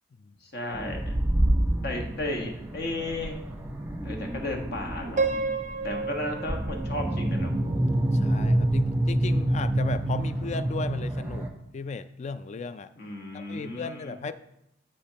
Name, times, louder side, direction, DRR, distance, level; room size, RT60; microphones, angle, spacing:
voice 1, 0.4-1.1 1.8-3.4 4.0-5.3 5.8-7.5 12.9-14.1, left 1 dB, 55° left, 2 dB, 1.4 m, -34 dB
sound 1, 0.7-11.5, right 1 dB, 10° right, 0.9 m, -27 dB
Piano, 5.2-8.2, right 4 dB, 40° right, 0.5 m, -32 dB
voice 2, 8.1-11.5 11.7-12.9 13.3-14.3, left 4 dB, 35° left, 12 dB, 0.3 m, -35 dB
15.0 x 5.1 x 2.9 m, 0.80 s
head